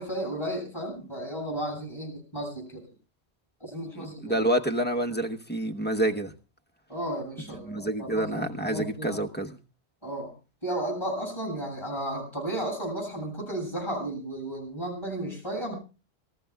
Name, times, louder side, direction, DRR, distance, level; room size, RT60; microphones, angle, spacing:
voice 1, 0.0-2.8 3.6-4.4 6.9-9.2 10.0-10.3 10.6-15.7, right 1 dB, 25° left, -1 dB, 7.7 m, -34 dB
voice 2, 4.0-6.3 7.6-9.6, right 1 dB, 10° left, 3 dB, 0.9 m, -28 dB
27.0 x 14.0 x 2.3 m, 0.32 s
omnidirectional pair, 1.1 m